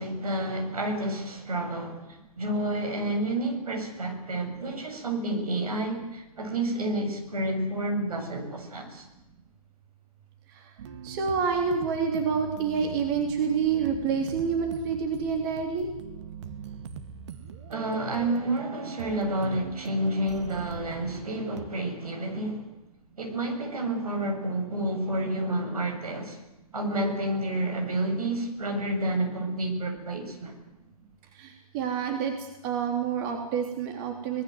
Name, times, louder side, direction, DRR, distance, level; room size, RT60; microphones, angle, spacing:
voice 1, 0.0-2.1 2.4-9.0 17.7-22.7 23.2-26.4 26.7-30.5, right 1 dB, 75° right, 4 dB, 7.5 m, -30 dB
sound 1, 10.8-21.7, right 7 dB, 50° right, 2.2 m, -42 dB
voice 2, 11.0-15.9 31.3-34.4, right 6 dB, 35° right, 3 dB, 3.4 m, -28 dB
25.5 x 19.5 x 8.0 m, 0.98 s
figure-of-eight pair, 130°, 19 cm